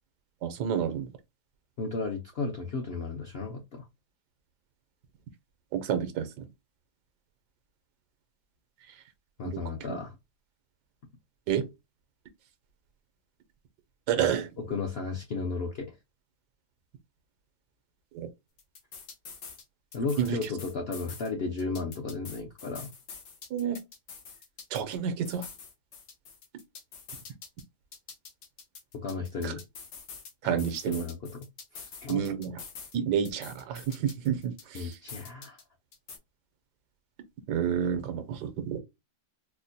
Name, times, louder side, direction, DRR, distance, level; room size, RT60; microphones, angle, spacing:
voice 1, 0.4-1.1 5.7-6.5 9.4-9.6 9.9-10.0 11.5-11.6 14.1-14.5 18.1-18.3 20.2-20.4 23.5-23.8 24.7-25.4 29.4-29.5 30.4-31.0 32.1-32.6 32.9-35.0 37.5-38.8, right 8 dB, 80° right, 1.3 m, -29 dB
voice 2, 1.8-3.8 9.4-10.2 14.1-14.3 14.7-15.9 19.9-22.9 29.0-29.6 30.4-31.5 31.7-32.2 34.7-35.6, left 4 dB, 65° left, 0.6 m, -34 dB
sound 1, 18.6-19.6 19.9-21.3 21.6-25.0 25.3-27.6 27.9-30.3 30.6-33.0 33.3-35.6 35.9-36.2, left 5 dB, 80° left, 1.5 m, -46 dB
4.5 x 2.1 x 2.6 m
omnidirectional pair, 1.8 m